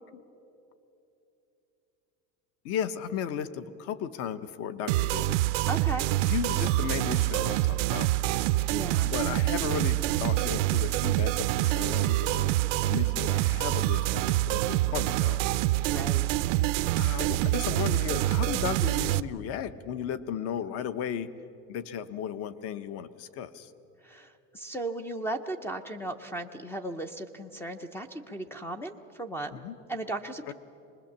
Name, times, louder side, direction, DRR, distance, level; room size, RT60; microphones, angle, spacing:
voice 1, 2.6-5.4 6.2-8.1 9.0-12.5 12.9-15.4 16.9-21.3 21.7-23.7 29.5-29.8 30.5-30.6, left 9 dB, 40° left, 14 dB, 0.9 m, -35 dB
sound 1, 4.9-19.2, right 17 dB, 85° right, 0.7 m, -26 dB
voice 2, 5.7-6.1 8.7-9.1 15.8-16.3 24.0-29.6 29.9-30.5, right 2 dB, 5° left, 8 dB, 0.5 m, -36 dB
24.5 x 20.5 x 7.3 m, 2.9 s
cardioid pair, 165°, 36 cm